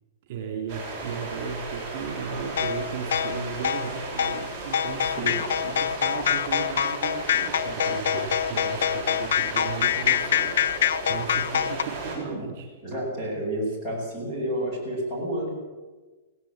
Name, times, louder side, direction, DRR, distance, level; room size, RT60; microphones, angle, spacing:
voice 1, 0.2-12.7, right 6 dB, 40° right, 3 dB, 3.2 m, -36 dB
sound 1, 0.7-12.2, right 3 dB, 5° right, 6.9 m, -35 dB
sound 2, 2.6-11.8, left 9 dB, 75° left, 0.7 m, -25 dB
voice 2, 12.8-15.5, right 1 dB, 10° left, -4 dB, 7.4 m, -30 dB
17.5 x 16.5 x 8.9 m, 1.3 s
supercardioid pair, 175°, 0 cm